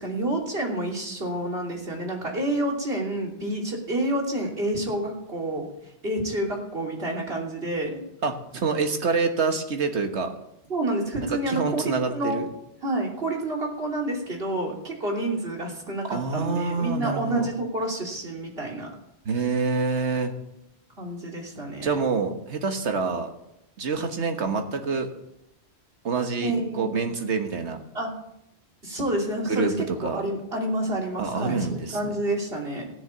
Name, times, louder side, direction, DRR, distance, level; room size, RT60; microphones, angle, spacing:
voice 1, 0.0-5.7 6.0-8.0 10.7-12.5 12.8-18.9 21.0-22.0 26.4-26.9 27.9-28.1 28.8-32.9, right 1 dB, 60° right, -1 dB, 3.2 m, -29 dB
voice 2, 8.2-10.3 11.3-12.5 16.1-17.5 19.2-20.3 21.8-23.3 23.8-25.1 26.0-27.8 29.5-30.2 31.2-32.1, right 4 dB, 85° right, 6 dB, 1.6 m, -27 dB
16.0 x 6.8 x 8.6 m, 0.83 s
omnidirectional pair, 1.1 m